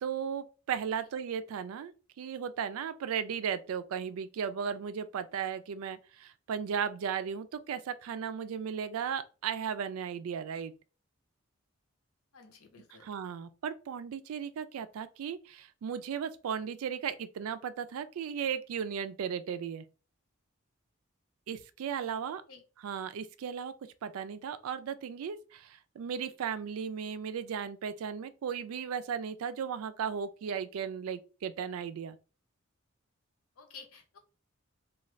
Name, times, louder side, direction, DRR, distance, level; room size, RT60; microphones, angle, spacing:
voice 1, 0.0-10.7 13.0-19.8 21.5-22.4 22.8-23.7 24.0-32.2, right 7 dB, 85° right, 0.3 m, -36 dB
voice 2, 12.3-13.1 22.2-22.6 33.6-34.2, left 5 dB, 90° left, 0.8 m, -53 dB
2.5 x 2.3 x 3.1 m
head